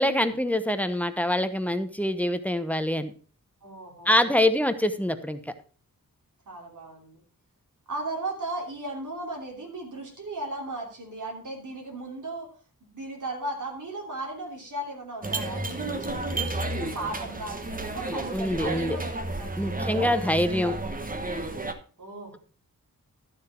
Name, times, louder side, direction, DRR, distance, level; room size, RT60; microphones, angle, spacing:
voice 1, 0.0-3.1 4.1-5.4 18.3-19.0 19.6-20.7, left 1 dB, 5° left, 10 dB, 0.9 m, -25 dB
voice 2, 3.6-4.4 6.5-7.2 7.9-12.5 12.9-19.7 22.0-22.4, right 2 dB, 65° right, -1 dB, 3.0 m, -36 dB
sound 1, 15.2-21.7, right 2 dB, 25° right, 1.2 m, -31 dB
12.5 x 7.4 x 4.5 m, 0.39 s
wide cardioid pair, 115°, 33 cm